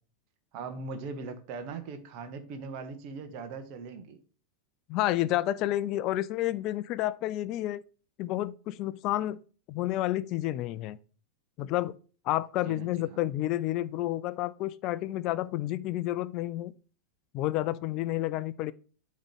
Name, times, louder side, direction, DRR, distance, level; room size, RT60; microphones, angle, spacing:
voice 1, 0.5-4.2 12.6-13.2, right 4 dB, 45° right, 1.1 m, -40 dB
voice 2, 4.9-7.8 8.2-9.4 9.7-11.0 11.6-12.0 12.3-16.7 17.3-18.7, left 15 dB, 40° left, 0.4 m, -30 dB
8.8 x 3.2 x 5.3 m
figure-of-eight pair, 90°, 0 cm